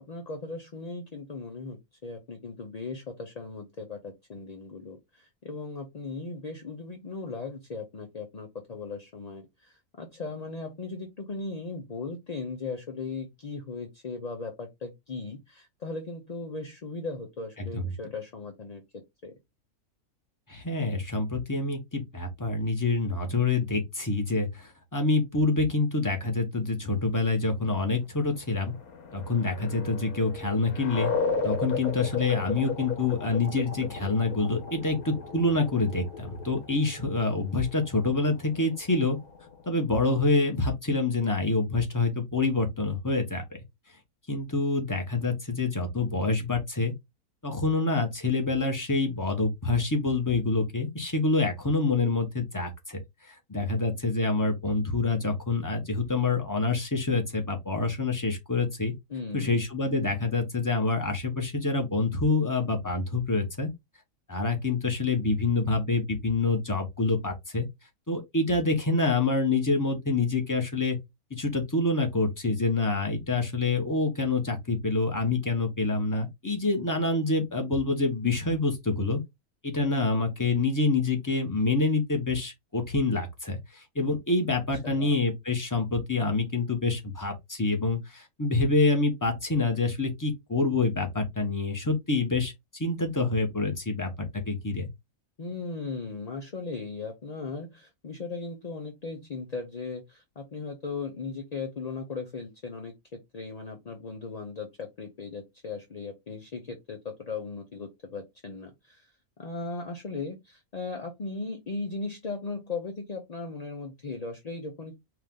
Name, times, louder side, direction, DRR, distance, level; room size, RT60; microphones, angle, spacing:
voice 1, 0.1-18.8 19.2-19.3 59.1-59.6 84.5-85.1 95.4-109.1 109.4-114.9, left 3 dB, 40° left, 0.6 m, -37 dB
voice 2, 20.5-28.7 29.1-31.1 31.4-39.2 39.7-43.4 44.3-46.9 47.4-53.0 53.3-58.9 59.3-63.7 64.3-67.7 68.1-71.0 71.3-79.2 79.6-92.5 92.8-94.9, left 3 dB, 15° left, 1.1 m, -27 dB
sound 1, 28.3-39.8, left 5 dB, 80° left, 1.4 m, -35 dB
4.8 x 2.6 x 3.7 m
omnidirectional pair, 1.6 m